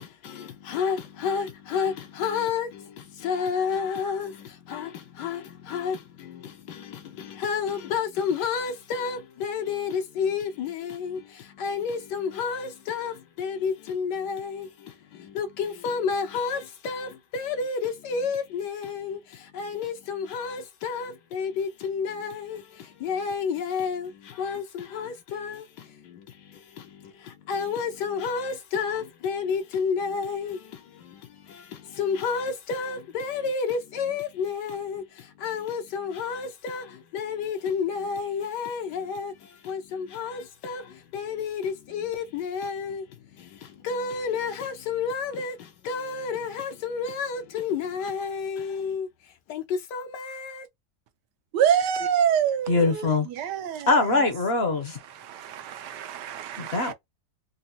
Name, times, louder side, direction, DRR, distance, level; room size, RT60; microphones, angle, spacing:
voice 1, 0.0-50.7, left 6 dB, 80° left, 1.3 m, -31 dB
voice 2, 51.5-54.2 55.1-56.9, right 9 dB, 80° right, 1.3 m, -26 dB
voice 3, 52.7-53.3 53.9-55.0 56.7-56.9, left 3 dB, 55° left, 0.8 m, -22 dB
4.0 x 2.1 x 2.7 m
omnidirectional pair, 1.8 m